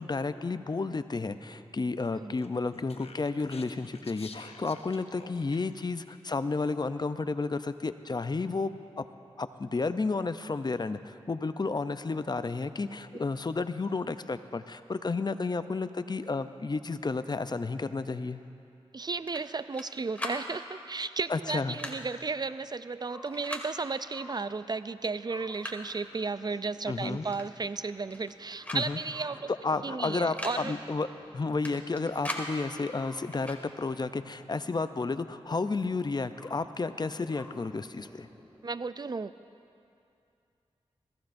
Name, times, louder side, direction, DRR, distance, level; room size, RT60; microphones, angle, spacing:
voice 1, 0.0-9.0 9.4-18.4 21.3-21.8 26.9-27.2 28.7-29.0 29.6-31.1 31.3-38.3, left 3 dB, 40° left, 11 dB, 0.6 m, -32 dB
Speech, 2.4-5.8, left 4 dB, 70° left, 0.8 m, -49 dB
voice 2, 18.9-29.5 29.8-30.7 38.6-39.3, right 4 dB, 40° right, 14 dB, 0.4 m, -34 dB
sound 1, 19.3-19.9 20.1-20.4 21.5-22.0 23.3-23.7 24.8-24.9 25.3-25.9 27.3-27.5 27.7-28.3 28.6-28.8 29.1-29.2 30.2-30.6 31.6-32.5 33.3-33.6, left 1 dB, 15° left, 1.9 m, -39 dB
sound 2, 22.5-38.7, left 1 dB, 5° right, 2.5 m, -54 dB
21.5 x 15.0 x 2.6 m, 2.6 s
cardioid pair, 45°, 11 cm